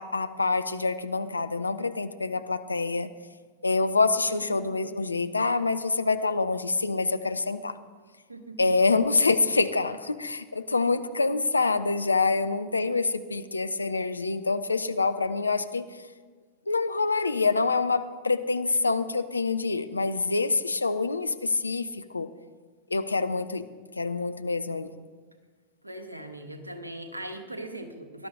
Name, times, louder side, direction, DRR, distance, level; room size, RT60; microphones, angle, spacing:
voice 1, 0.0-3.1 3.6-7.8 8.6-15.9 16.7-22.3 22.9-23.7 24.0-24.9, left 3 dB, 80° left, 11 dB, 0.6 m, -26 dB
voice 2, 4.2-4.7 8.3-8.7 25.8-28.3, right 1 dB, 85° right, 6 dB, 1.3 m, -40 dB
18.5 x 11.5 x 3.7 m, 1.5 s
figure-of-eight pair, 90°, 0 cm